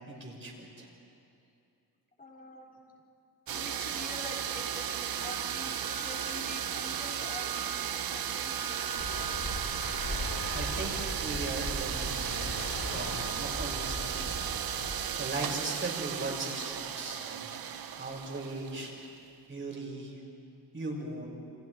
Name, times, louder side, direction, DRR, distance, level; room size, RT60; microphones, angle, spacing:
voice 1, 0.1-0.9 10.5-11.0 11.2-18.9 19.5-20.2 20.7-21.3, right 2 dB, 30° right, -1 dB, 5.6 m, -39 dB
voice 2, 2.2-2.7 3.5-9.6, left 2 dB, 20° left, -1 dB, 4.2 m, -46 dB
sound 1, 3.5-19.2, right 9 dB, 60° right, 1.1 m, -35 dB
sound 2, 9.0-14.9, left 1 dB, 55° left, 7.5 m, -38 dB
29.0 x 28.5 x 4.7 m, 2.6 s
cardioid pair, 120°, 40 cm